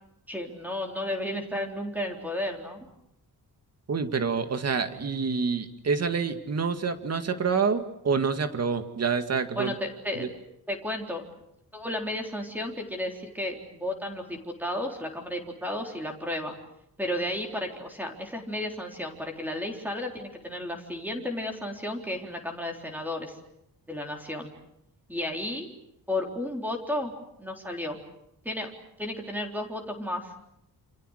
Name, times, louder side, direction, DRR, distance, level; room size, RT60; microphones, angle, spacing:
voice 1, 0.3-2.9 9.5-10.3 10.7-11.2 11.7-16.5 17.0-23.4 23.9-24.5 25.1-25.7 26.1-27.1 27.4-28.0 28.4-28.7 29.0-30.5, left 1 dB, 5° right, 2 dB, 3.8 m, -33 dB
voice 2, 3.9-9.7 10.2-10.3, right 5 dB, 40° right, 8 dB, 2.1 m, -27 dB
28.5 x 28.0 x 6.5 m, 0.79 s
wide cardioid pair, 175°, 39 cm